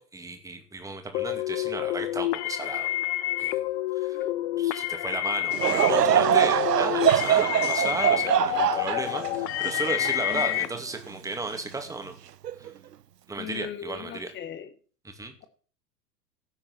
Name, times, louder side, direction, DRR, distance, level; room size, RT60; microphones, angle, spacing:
voice 1, 0.0-3.0 3.4-3.6 3.9-4.2 4.6-12.2 12.6-12.7 13.3-14.3 15.0-15.5, right 3 dB, 5° right, 5 dB, 2.4 m, -34 dB
sound 1, 1.1-10.7, left 15 dB, 40° left, 1.1 m, -28 dB
Laughter / Crowd, 5.5-11.0 11.5-11.6 12.4-12.7, right 10 dB, 80° right, 0.6 m, -24 dB
voice 2, 10.3-10.6 13.4-14.7, left 8 dB, 20° left, 10 dB, 1.9 m, -39 dB
17.0 x 8.5 x 4.3 m, 0.41 s
figure-of-eight pair, 105°, 48 cm